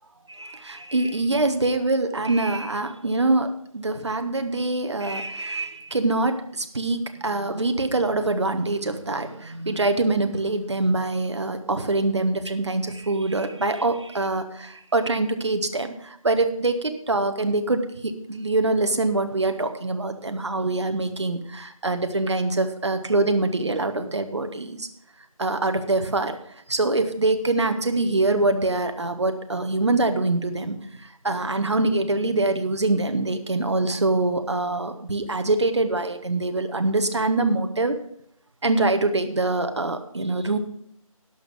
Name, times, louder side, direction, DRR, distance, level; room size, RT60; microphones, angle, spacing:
voice 1, 0.3-24.9 25.4-26.4 26.7-37.9 38.6-40.6, right 2 dB, 50° right, 8 dB, 1.1 m, -24 dB
11.5 x 5.5 x 7.6 m, 0.69 s
figure-of-eight pair, 175°, 18 cm